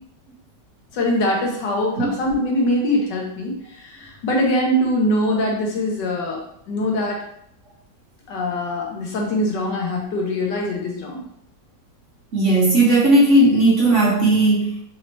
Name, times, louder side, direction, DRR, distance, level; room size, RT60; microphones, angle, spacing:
voice 1, 0.9-6.4 6.7-7.2 8.3-11.2, left 1 dB, 80° left, -1 dB, 1.6 m, -23 dB
voice 2, 12.3-14.8, right 2 dB, 55° right, -4 dB, 0.9 m, -16 dB
4.1 x 2.9 x 3.0 m, 0.71 s
omnidirectional pair, 1.9 m